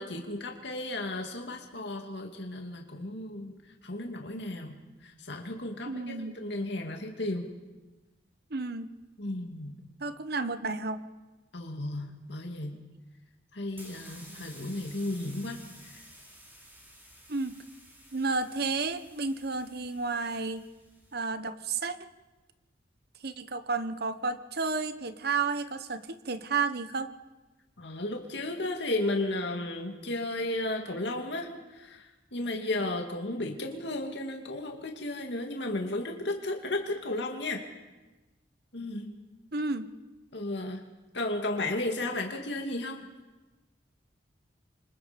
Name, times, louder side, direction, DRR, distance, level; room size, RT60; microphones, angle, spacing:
voice 1, 0.0-3.6 3.8-4.8 5.0-7.5 9.2-9.8 11.5-12.8 13.5-15.6 27.8-37.7 38.7-39.2 40.3-40.8 41.1-43.0, left 2 dB, 65° left, 2 dB, 2.4 m, -34 dB
voice 2, 5.8-6.4 8.5-8.9 10.0-11.0 17.3-17.6 18.1-20.7 21.1-22.0 23.2-27.1 39.5-39.9, right 4 dB, 55° right, 11 dB, 1.1 m, -32 dB
sound 1, 13.7-21.1, right 1 dB, 10° right, 3.9 m, -53 dB
28.0 x 25.5 x 5.3 m, 1.1 s
head